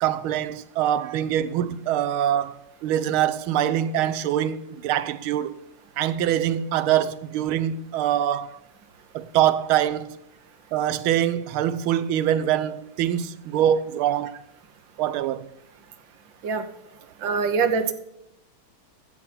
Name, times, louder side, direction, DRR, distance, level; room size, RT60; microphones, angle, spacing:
voice 1, 0.0-5.6 6.0-8.6 9.1-10.2 10.7-14.4 15.0-15.5, right 11 dB, 85° right, 1.5 m, -24 dB
voice 2, 17.2-17.9, right 5 dB, 65° right, 1.6 m, -23 dB
14.5 x 7.4 x 4.2 m
omnidirectional pair, 2.3 m